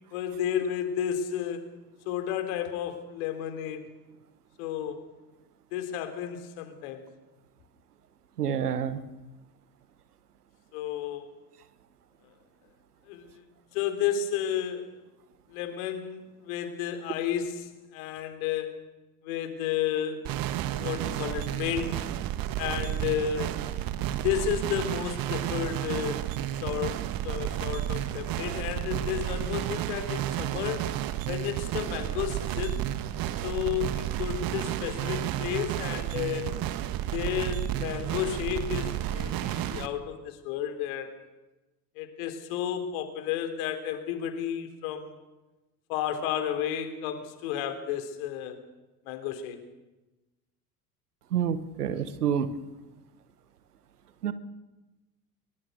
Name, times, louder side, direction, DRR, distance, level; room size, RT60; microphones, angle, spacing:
voice 1, 0.1-1.7 2.1-3.8 4.6-5.0 5.7-7.1 10.7-11.3 13.1-13.5 13.7-14.9 15.5-18.9 19.2-20.3 20.6-22.1 22.6-23.5 24.2-26.3 26.6-30.8 31.3-32.8 33.4-36.6 37.1-41.1 42.0-45.2 45.9-48.6 49.1-49.6, left 9 dB, 65° left, 8 dB, 3.7 m, -32 dB
voice 2, 8.4-9.0 51.3-52.5 54.2-54.3, right 8 dB, 80° right, 13 dB, 1.5 m, -28 dB
sound 1, 20.2-39.9, right 12 dB, 50° right, 1.6 m, -31 dB
23.0 x 23.0 x 6.8 m, 1.1 s
figure-of-eight pair, 65°, 45 cm